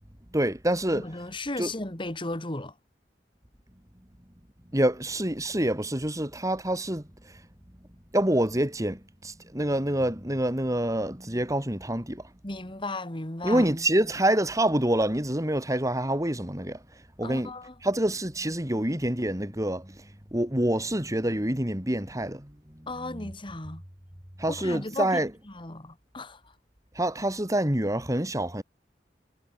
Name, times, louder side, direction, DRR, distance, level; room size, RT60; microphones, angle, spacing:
voice 1, 0.3-1.0 1.6-1.7 4.7-7.0 8.1-12.2 13.4-16.8 17.2-17.5 17.8-20.0 20.3-23.3 24.4-25.3 26.9-28.6, right 1 dB, 20° right, 3.6 m, -27 dB
voice 2, 0.9-2.7 12.4-13.7 17.2-17.7 22.9-23.8 24.5-25.2 25.5-26.4, left 2 dB, 30° left, 2.5 m, -35 dB
head